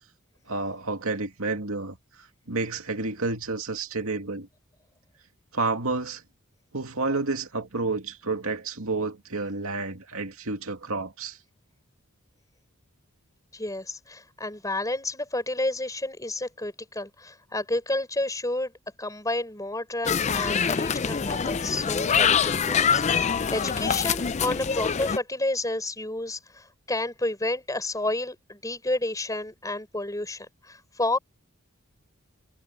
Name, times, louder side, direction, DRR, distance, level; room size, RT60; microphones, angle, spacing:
voice 1, 0.5-2.0 2.5-4.5 5.5-6.2 6.7-11.4, right 3 dB, 75° right, 2.5 m, -30 dB
voice 2, 13.5-18.7 19.0-31.2, left 2 dB, 15° left, 5.9 m, -30 dB
sound 1, 20.0-25.2, left 6 dB, 30° left, 0.4 m, -25 dB
head